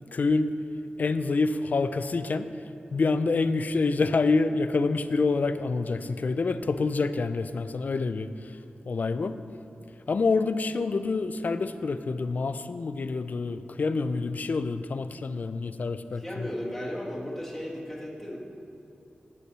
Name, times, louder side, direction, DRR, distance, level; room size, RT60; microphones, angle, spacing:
voice 1, 0.1-0.5 1.0-2.5 2.9-8.6 8.8-9.4 10.1-16.5, left 3 dB, 55° left, 11 dB, 0.4 m, -27 dB
voice 2, 16.2-18.4, left 1 dB, ahead, -6 dB, 1.7 m, -35 dB
8.2 x 5.4 x 7.4 m, 2.7 s
wide cardioid pair, 120°, 3 cm